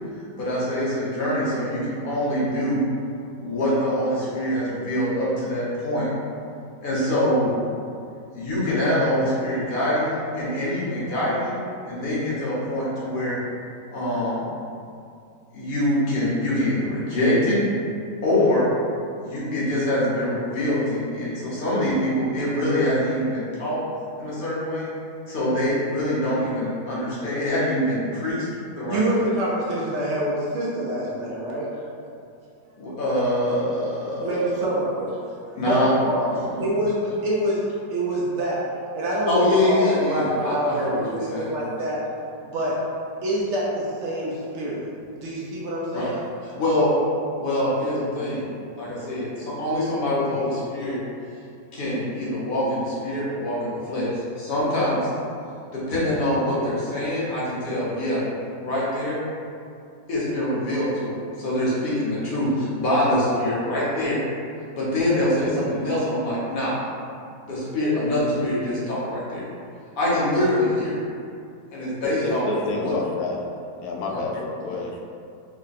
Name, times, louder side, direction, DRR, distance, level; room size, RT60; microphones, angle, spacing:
voice 1, 0.3-2.8 3.4-6.1 6.8-7.5 8.3-11.6 11.9-13.4 13.9-14.4 15.5-17.6 18.2-18.7 19.2-23.8 24.2-24.9 25.3-28.5 28.8-29.2 32.8-34.5 35.5-35.9 36.3-36.7 39.3-41.5 45.9-46.1 46.4-46.9 47.4-48.4 48.7-51.0 51.7-54.1 54.4-55.1 55.7-58.2 58.6-59.2 60.1-64.2 64.7-66.7 67.4-69.4 70.0-71.0 71.7-72.5 72.8-72.9 74.1-74.2 74.7-74.8, left 1 dB, 40° left, -8 dB, 0.8 m, -24 dB
voice 2, 28.9-31.7 34.2-35.1 35.6-37.6 37.9-38.6 38.9-42.0 42.4-42.8 43.2-44.8 45.2-46.2, right 1 dB, 70° right, -5 dB, 0.6 m, -26 dB
voice 3, 72.0-73.4 73.8-75.0, left 3 dB, 70° left, -1 dB, 1.0 m, -29 dB
3.5 x 2.1 x 4.0 m, 2.4 s
omnidirectional pair, 1.9 m